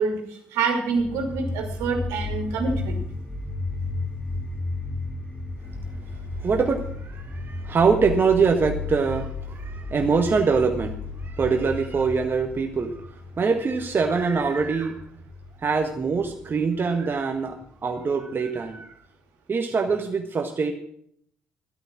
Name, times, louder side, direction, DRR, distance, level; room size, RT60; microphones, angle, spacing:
voice 1, 0.0-3.0, right 4 dB, 70° right, 3 dB, 2.7 m, -26 dB
sound 1, 0.9-18.0, left 2 dB, 20° left, 2.5 m, -34 dB
voice 2, 6.4-11.0 11.2-15.0 15.6-17.6 17.8-19.0 19.5-20.7, right 5 dB, 40° right, 4 dB, 1.6 m, -24 dB
13.0 x 12.0 x 6.1 m, 0.67 s
hypercardioid pair, 45°, 6 cm